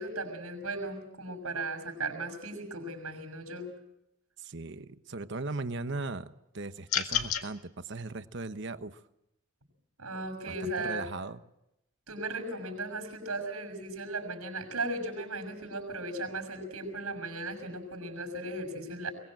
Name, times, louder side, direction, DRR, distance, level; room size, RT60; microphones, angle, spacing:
voice 1, 0.0-3.7 10.0-11.1 12.1-19.1, right 2 dB, 80° right, 5 dB, 6.5 m, -36 dB
voice 2, 4.4-9.0 10.5-11.4, right 3 dB, 55° right, 11 dB, 1.1 m, -38 dB
sound 1, 6.9-7.5, left 9 dB, 85° left, 1.8 m, -29 dB
22.5 x 20.5 x 7.6 m, 0.83 s
head